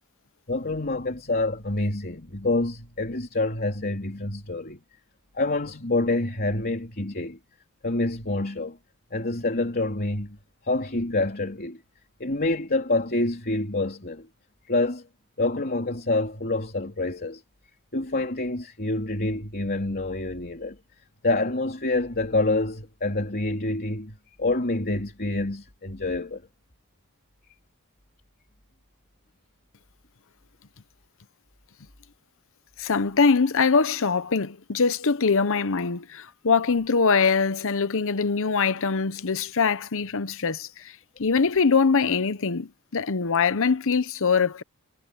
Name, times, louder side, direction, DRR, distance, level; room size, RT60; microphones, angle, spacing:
voice 1, 0.5-4.8 5.3-7.4 7.8-8.8 9.1-10.4 10.6-11.8 12.2-14.3 14.7-15.1 15.4-17.4 17.9-20.8 21.2-26.4 35.4-35.5, left 2 dB, 45° left, 3.4 m, -27 dB
voice 2, 32.8-40.9 41.2-44.6, left 5 dB, 65° left, 0.9 m, -23 dB
head